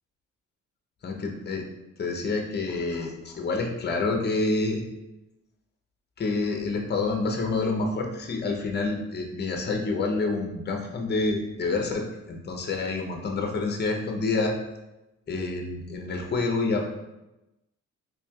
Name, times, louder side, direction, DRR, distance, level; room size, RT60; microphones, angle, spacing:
voice 1, 1.0-1.6 2.0-4.8 6.2-14.6 15.3-16.9, left 3 dB, 35° left, 2 dB, 0.7 m, -28 dB
4.2 x 3.1 x 2.3 m, 0.96 s
cardioid pair, 90°, 30 cm